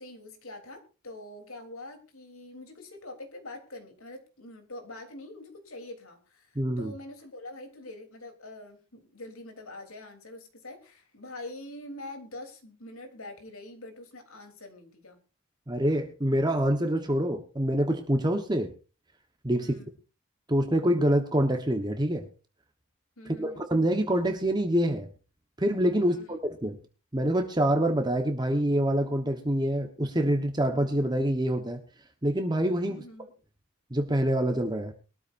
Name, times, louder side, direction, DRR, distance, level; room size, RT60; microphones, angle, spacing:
voice 1, 0.0-15.2 19.6-19.9 23.2-23.6 26.0-26.4 32.9-33.3, left 2 dB, 80° left, 5 dB, 3.4 m, -45 dB
voice 2, 6.5-6.9 15.7-18.7 19.4-19.7 20.5-22.3 23.4-25.1 25.6-26.8 27.1-31.8 32.2-33.0 33.9-34.9, right 1 dB, 20° right, 5 dB, 1.1 m, -26 dB
22.0 x 13.0 x 2.6 m, 0.33 s
head